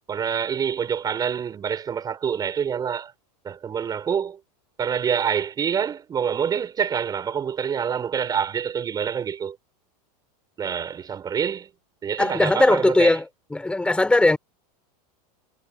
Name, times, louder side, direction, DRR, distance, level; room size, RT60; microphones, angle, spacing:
voice 1, 0.1-3.1 3.4-4.4 4.8-9.6 10.6-11.7 12.0-13.2, right 7 dB, 20° right, 6.9 m, -26 dB
voice 2, 12.2-14.4, left 2 dB, 5° left, 4.6 m, -19 dB
supercardioid pair, 155°, 20 cm